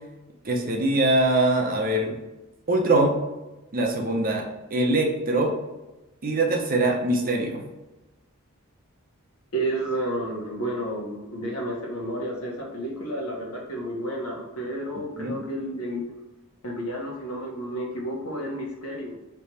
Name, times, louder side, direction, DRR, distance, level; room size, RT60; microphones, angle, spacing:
voice 1, 0.4-2.2 2.7-3.2 3.7-5.5 6.2-7.6 15.2-15.4, right 2 dB, 40° right, 1 dB, 0.7 m, -23 dB
voice 2, 9.5-16.1 16.6-19.1, right 1 dB, 80° left, -2 dB, 1.2 m, -31 dB
3.4 x 3.0 x 4.2 m, 1.0 s
head